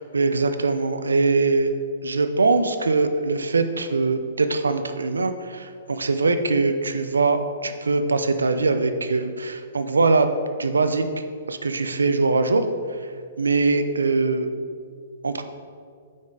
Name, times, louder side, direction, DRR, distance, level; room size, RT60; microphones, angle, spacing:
voice 1, 0.0-1.7 2.0-10.3 10.6-11.0 11.5-12.6 13.0-13.1 13.4-14.5 15.2-15.4, right 3 dB, 90° right, 8 dB, 0.5 m, -22 dB
8.4 x 4.3 x 4.8 m, 2.1 s
hypercardioid pair, 125°, 0 cm